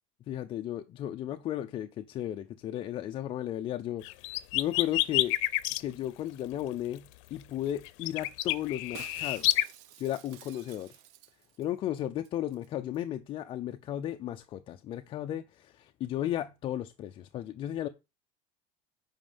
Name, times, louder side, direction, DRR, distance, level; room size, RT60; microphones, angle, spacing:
voice 1, 0.3-4.0 4.5-5.4 5.8-9.6 10.0-10.9 11.6-17.9, left 12 dB, 35° left, 0.5 m, -34 dB
sound 1, 4.0-5.8 7.8-9.6, left 19 dB, 85° left, 0.6 m, -28 dB
Shatter, 8.9-11.7 12.0-12.1 12.2-12.7 12.9-13.0, right 11 dB, 75° right, 1.1 m, -51 dB
9.0 x 5.2 x 5.3 m
cardioid pair, 160°, 16 cm